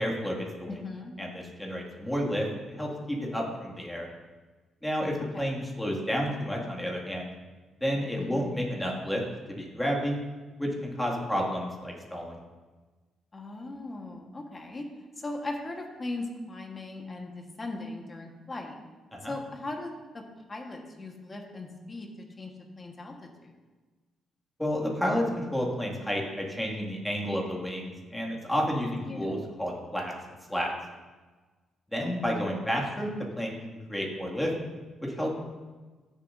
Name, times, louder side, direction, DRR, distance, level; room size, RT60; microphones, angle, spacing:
voice 1, 0.0-0.8 1.2-4.1 4.8-7.3 7.8-9.2 9.6-10.2 10.6-12.4 19.1-19.3 24.6-30.1 30.5-30.7 31.9-33.1 33.4-34.5 35.0-35.3, equal, 5° left, -2 dB, 2.3 m, -31 dB
voice 2, 0.7-1.1 5.3-5.4 8.2-8.6 13.3-14.9 15.2-18.8 19.3-20.2 20.5-22.1 22.4-22.5 22.8-23.5 29.1-29.3 32.0-32.1, left 2 dB, 30° left, 2 dB, 1.5 m, -38 dB
15.0 x 7.2 x 2.7 m, 1.3 s
cardioid pair, 90°, 0 cm